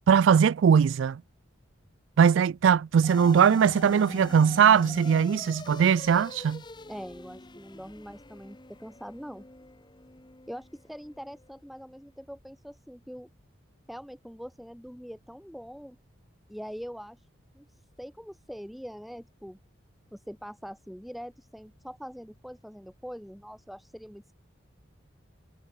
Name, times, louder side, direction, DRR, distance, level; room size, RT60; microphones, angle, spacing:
voice 1, 0.1-1.2 2.2-6.6, right 7 dB, 70° right, 0.3 m, -20 dB
sound 1, 3.0-11.5, left 2 dB, 20° left, 1.0 m, -44 dB
voice 2, 6.9-9.4 10.5-13.3 13.9-16.0 16.5-17.2 17.5-19.6 20.1-24.3, equal, ahead, 1.3 m, -43 dB
head